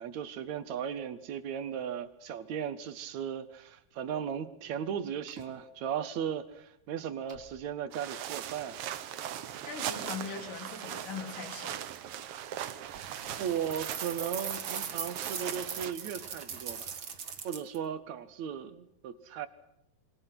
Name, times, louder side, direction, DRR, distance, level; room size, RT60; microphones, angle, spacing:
voice 1, 0.0-8.8 13.4-16.9 17.4-19.5, right 8 dB, 60° right, 11 dB, 2.3 m, -36 dB
sound 1, 5.3-5.5 7.3-7.7 9.3-9.5 11.3-11.6 13.3-13.5, right 1 dB, 20° right, 4.4 m, -52 dB
sound 2, 7.9-15.9, right 11 dB, 80° right, 1.3 m, -40 dB
voice 2, 9.4-11.8, left 5 dB, 70° left, 5 dB, 5.4 m, -41 dB
sound 3, 12.9-17.8, right 6 dB, 40° right, 2.2 m, -40 dB
27.0 x 23.5 x 6.0 m, 0.79 s
omnidirectional pair, 4.0 m